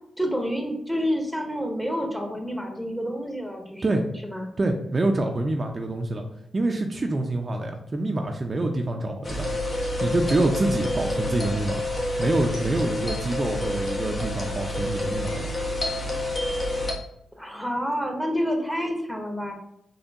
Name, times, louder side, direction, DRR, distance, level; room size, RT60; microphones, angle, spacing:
voice 1, 0.2-3.8 4.2-4.5 17.4-19.5, equal, 5° left, 3 dB, 1.0 m, -28 dB
voice 2, 4.6-6.2 6.5-9.5 10.0-11.8 12.2-15.5, right 2 dB, 40° right, 3 dB, 0.5 m, -26 dB
sound 1, 9.2-16.9, left 1 dB, 45° left, 1.1 m, -28 dB
4.2 x 2.9 x 2.9 m, 0.77 s
supercardioid pair, 45°, 0 cm